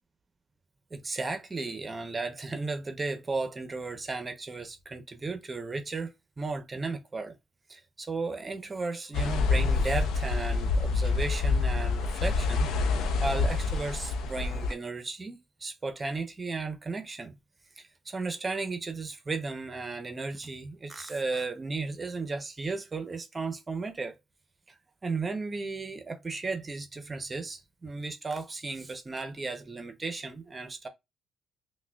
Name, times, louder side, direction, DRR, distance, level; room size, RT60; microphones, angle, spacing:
voice 1, 0.9-7.3 7.7-17.4 17.8-24.1 25.0-30.9, right 3 dB, 30° right, 0.6 m, -35 dB
sound 1, 9.1-14.7, left 4 dB, 85° left, 0.5 m, -27 dB
5.8 x 2.1 x 2.2 m
cardioid pair, 90°, 0 cm